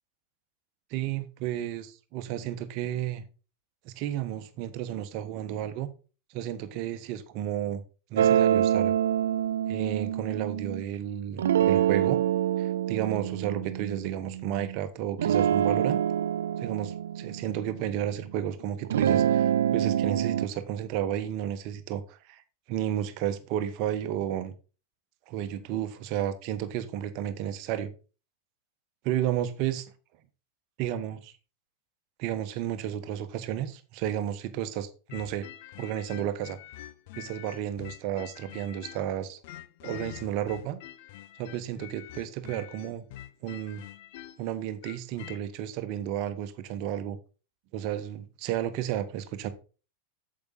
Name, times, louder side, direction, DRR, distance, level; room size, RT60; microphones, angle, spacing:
voice 1, 0.9-3.2 3.8-5.9 6.3-7.8 8.1-8.9 9.7-12.2 12.6-16.0 16.6-22.4 22.7-24.5 25.3-27.9 29.0-29.8 30.8-31.3 32.2-35.5 35.8-36.6 37.2-39.4 39.8-40.8 41.4-43.0 43.4-43.8 44.4-47.2 47.7-49.5, right 11 dB, 45° right, 1.3 m, -32 dB
sound 1, 8.2-10.8 11.4-14.8 15.2-18.4 18.8-20.5, right 10 dB, 60° right, 0.3 m, -26 dB
sound 2, 35.1-39.1 39.4-45.4, left 13 dB, 50° left, 0.9 m, -45 dB
8.6 x 7.6 x 4.2 m
figure-of-eight pair, 90°, 0 cm